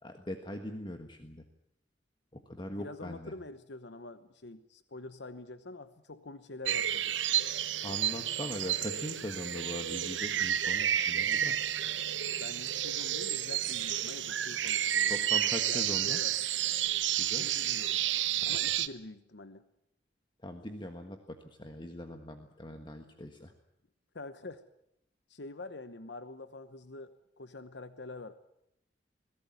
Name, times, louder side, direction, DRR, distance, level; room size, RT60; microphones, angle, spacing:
voice 1, 0.0-1.4 2.3-3.3 7.8-11.6 15.1-16.2 17.2-17.5 18.5-18.6 20.4-23.5, left 1 dB, 25° left, 5 dB, 1.5 m, -41 dB
voice 2, 2.6-7.1 12.3-15.2 15.7-16.4 17.3-18.0 18.4-19.6 24.1-24.6 25.3-28.3, left 2 dB, 65° left, 12 dB, 1.0 m, -46 dB
sound 1, 6.7-18.9, right 11 dB, 90° right, 0.9 m, -31 dB
21.5 x 16.5 x 9.4 m, 0.79 s
head